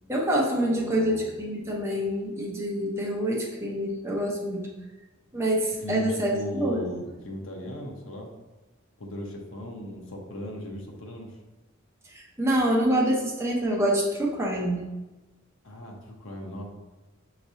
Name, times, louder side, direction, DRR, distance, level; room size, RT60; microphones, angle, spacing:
voice 1, 0.1-1.1 1.4-4.7 5.3-6.3 6.6-6.8 12.1-14.8, right 1 dB, 15° right, -4 dB, 0.8 m, -26 dB
voice 2, 0.6-1.3 5.8-8.3 9.0-11.3 15.6-16.7, equal, 65° left, 1 dB, 0.8 m, -37 dB
5.8 x 3.1 x 2.7 m, 1.1 s
head